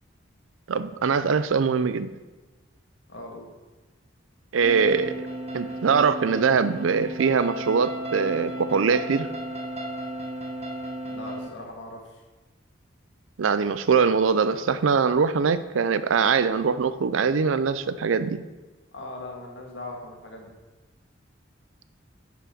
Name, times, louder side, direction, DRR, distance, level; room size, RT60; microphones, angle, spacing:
voice 1, 0.7-2.1 4.5-5.1 5.5-9.3 13.4-18.4, right 5 dB, 90° right, 14 dB, 0.5 m, -22 dB
voice 2, 3.1-3.5 11.1-12.2 18.9-20.6, left 2 dB, 70° left, 1 dB, 1.8 m, -39 dB
sound 1, 4.6-11.5, right 1 dB, 30° right, 0.9 m, -34 dB
10.5 x 4.9 x 5.1 m, 1.2 s
head